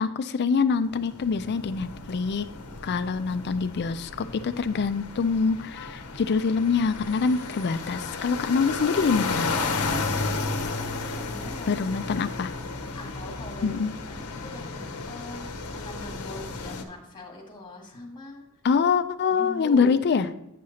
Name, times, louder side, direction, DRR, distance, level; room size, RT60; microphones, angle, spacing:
voice 1, 0.0-2.5 2.8-9.5 11.7-12.5 13.6-13.9 18.6-20.3, left 5 dB, 50° left, 12 dB, 0.4 m, -25 dB
sound 1, 0.8-16.8, left 3 dB, 85° left, 0.8 m, -33 dB
voice 2, 10.8-11.8 12.2-12.3 12.9-13.8 14.1-18.4 19.3-19.9, left 2 dB, 20° left, -1 dB, 1.6 m, -42 dB
9.2 x 6.4 x 2.8 m, 0.87 s
head